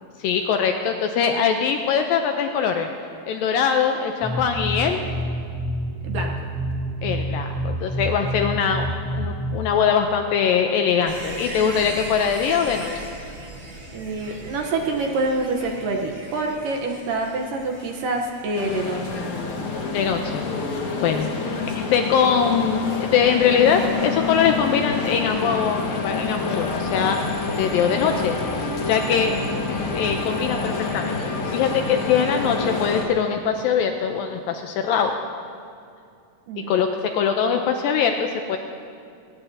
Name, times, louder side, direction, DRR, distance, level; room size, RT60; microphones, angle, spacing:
voice 1, 0.2-2.9 3.3-5.0 7.0-8.9 9.1-12.9 19.9-27.2 27.6-28.3 28.9-29.4 29.9-35.1 36.7-38.6, left 7 dB, 80° left, 5 dB, 2.2 m, -22 dB
sound 1, 4.2-9.5, right 1 dB, 20° right, 0.5 m, -28 dB
sound 2, 11.1-21.9 22.2-22.3, right 1 dB, 40° right, 1.0 m, -40 dB
voice 2, 13.9-19.2 21.3-21.8 36.5-36.8, right 2 dB, 70° right, 2 dB, 2.3 m, -27 dB
sound 3, 18.6-33.0, left 4 dB, 55° left, 2.5 m, -27 dB
21.5 x 19.0 x 2.8 m, 2.4 s
omnidirectional pair, 4.6 m